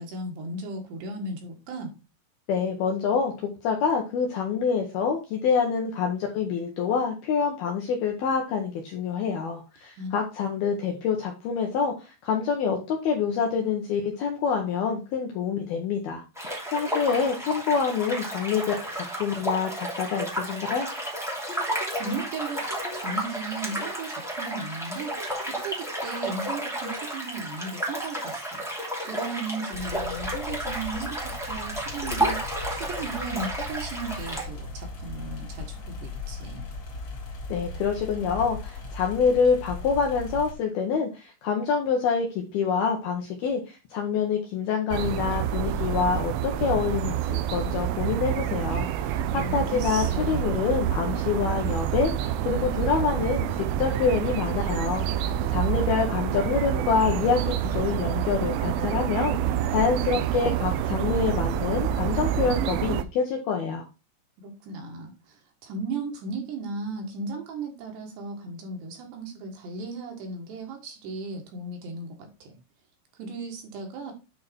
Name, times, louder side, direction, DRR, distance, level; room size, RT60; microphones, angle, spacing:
voice 1, 0.0-1.9 10.0-10.1 10.7-11.0 21.9-28.6 29.1-36.7 49.3-50.6 64.4-72.5 73.2-74.1, right 3 dB, 65° right, 2 dB, 3.5 m, -36 dB
voice 2, 2.5-20.9 37.5-59.4 59.7-63.9, left 6 dB, 75° left, 2 dB, 2.4 m, -26 dB
sound 1, 16.4-34.4, right 1 dB, ahead, 0.6 m, -32 dB
sound 2, 29.7-40.5, left 2 dB, 40° left, 2.1 m, -38 dB
sound 3, 44.9-63.0, right 10 dB, 80° right, 3.1 m, -27 dB
9.3 x 4.6 x 4.4 m, 0.29 s
omnidirectional pair, 5.8 m